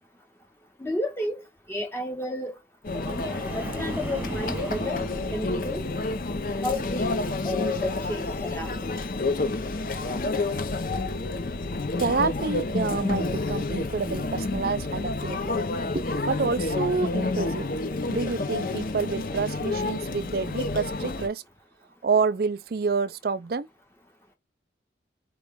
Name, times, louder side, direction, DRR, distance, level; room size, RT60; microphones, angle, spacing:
voice 1, 0.8-1.4 1.7-2.6 2.9-5.0 5.3-5.9 6.6-7.1 7.4-9.0, left 1 dB, 15° left, 0.7 m, -32 dB
Conversation / Chatter / Crowd, 2.8-21.3, left 2 dB, 50° left, 0.7 m, -29 dB
sound 1, 2.9-6.3 6.7-7.1, right 1 dB, 10° right, 1.0 m, -38 dB
voice 2, 12.0-15.6 15.9-17.7 18.1-21.4 22.0-23.7, right 5 dB, 55° right, 0.4 m, -28 dB
4.5 x 3.1 x 3.5 m
head